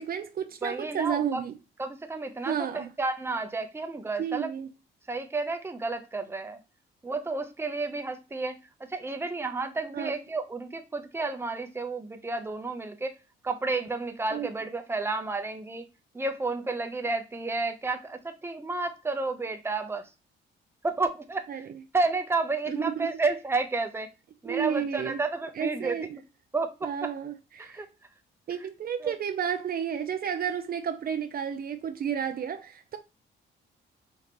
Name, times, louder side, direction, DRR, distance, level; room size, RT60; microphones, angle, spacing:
voice 1, 0.0-1.5 2.4-2.9 4.2-4.7 9.9-10.1 14.3-14.5 21.5-21.8 22.7-23.1 24.5-25.2 25.6-26.1 26.8-27.8 28.5-33.0, right 8 dB, 50° right, 0.5 m, -32 dB
voice 2, 0.6-1.4 1.8-4.5 5.1-6.6 7.0-8.6 8.9-13.1 13.4-15.9 16.1-20.1 20.8-21.7 21.9-24.1 24.4-26.0 26.5-27.1 27.6-27.9 28.6-28.7 29.0-29.2, right 3 dB, 10° right, 0.7 m, -31 dB
5.0 x 2.8 x 2.9 m
cardioid pair, 90°, 20 cm